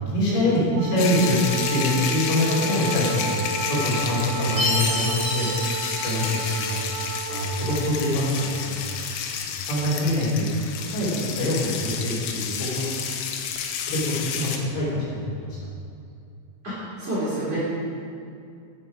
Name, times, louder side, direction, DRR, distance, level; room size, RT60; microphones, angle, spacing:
voice 1, 0.0-1.4 1.7-3.4 3.7-5.5 6.0-6.8 7.3-8.9 9.4-13.0 13.9-15.6, left 1 dB, 65° left, -6 dB, 5.4 m, -25 dB
Wind instrument woodwind instrument, 0.7-8.7, right 4 dB, 85° right, 2.5 m, -33 dB
sound 1, 1.0-14.6, left 7 dB, 90° left, 3.7 m, -31 dB
Chime, 4.6-7.0, left 2 dB, 45° left, 1.0 m, -29 dB
voice 2, 16.6-17.8, right 1 dB, 35° right, -9 dB, 3.6 m, -28 dB
15.5 x 8.7 x 5.0 m, 2.4 s
omnidirectional pair, 6.0 m